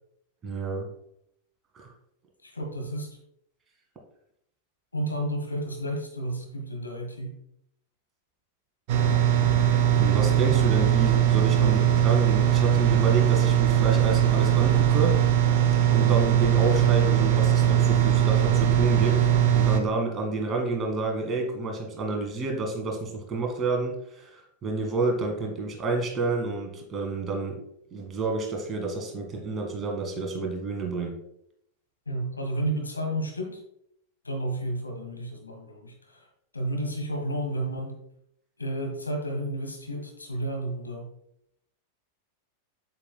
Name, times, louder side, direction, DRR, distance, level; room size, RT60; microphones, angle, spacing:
voice 1, 0.4-0.9 1.8-1.9 10.0-15.1 15.9-19.2 19.5-27.6 27.9-31.2, right 3 dB, 25° right, 1 dB, 1.9 m, -29 dB
voice 2, 2.4-3.2 4.9-7.4 11.6-11.8 32.1-33.6 34.2-36.3 36.5-38.0 38.6-41.1, right 1 dB, 80° left, 3 dB, 1.5 m, -32 dB
sound 1, 8.9-19.8, right 10 dB, 50° right, 0.8 m, -21 dB
7.9 x 7.5 x 2.3 m, 0.73 s
figure-of-eight pair, 90°, 0 cm